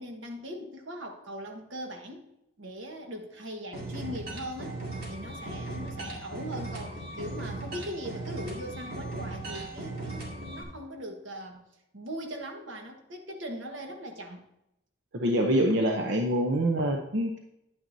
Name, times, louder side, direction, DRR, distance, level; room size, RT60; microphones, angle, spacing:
voice 1, 0.0-2.3 2.6-11.7 11.9-14.4, equal, 90° right, 3 dB, 1.4 m, -40 dB
sound 1, 3.7-10.6, right 2 dB, 50° right, 2.3 m, -38 dB
voice 2, 15.1-17.4, right 1 dB, 70° right, 2 dB, 0.7 m, -25 dB
10.0 x 9.0 x 2.7 m, 0.84 s
head